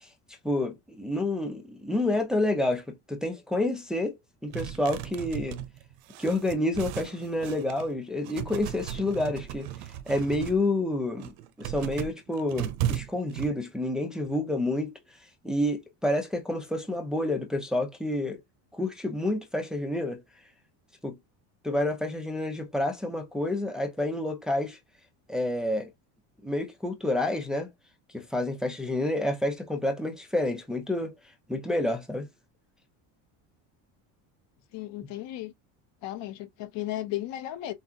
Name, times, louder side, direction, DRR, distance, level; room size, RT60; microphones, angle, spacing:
voice 1, 0.4-4.2 4.4-5.6 6.2-9.7 10.1-11.3 11.6-14.9 15.4-18.4 18.7-20.2 21.0-21.1 21.6-24.8 25.3-25.9 26.4-27.7 28.1-31.1 31.5-32.3, left 1 dB, ahead, 0.8 m, -29 dB
sound 1, 4.5-7.9 8.2-10.6 11.1-13.5, right 11 dB, 80° right, 0.9 m, -36 dB
voice 2, 34.7-35.5 36.0-37.7, left 14 dB, 65° left, 1.1 m, -35 dB
6.0 x 2.4 x 2.8 m
cardioid pair, 145°, 46 cm